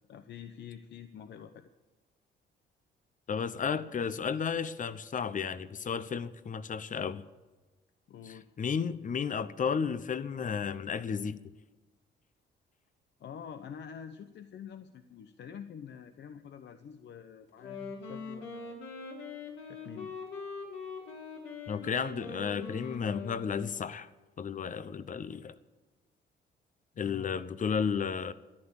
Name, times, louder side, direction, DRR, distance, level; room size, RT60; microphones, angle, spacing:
voice 1, 0.1-1.7 8.1-8.5 13.2-18.8 19.7-20.2 26.9-27.4, left 8 dB, 65° left, 10 dB, 0.9 m, -47 dB
voice 2, 3.3-7.2 8.2-11.4 21.7-24.1 24.4-25.6 27.0-28.3, left 6 dB, 40° left, 15 dB, 0.9 m, -33 dB
Wind instrument woodwind instrument, 17.5-24.0, left 4 dB, 80° left, 3.6 m, -42 dB
14.0 x 11.0 x 8.8 m, 1.2 s
cardioid pair, 90°, 20 cm